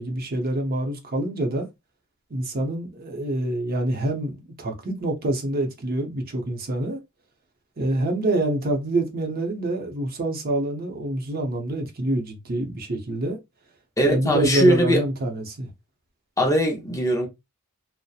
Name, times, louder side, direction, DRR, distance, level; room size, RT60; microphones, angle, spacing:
voice 1, 0.0-1.7 2.3-7.0 7.8-13.4 14.1-15.7, right 1 dB, 45° right, 0.7 m, -26 dB
voice 2, 14.0-15.0 16.4-17.3, equal, 15° left, 0.5 m, -20 dB
2.7 x 2.0 x 2.3 m
head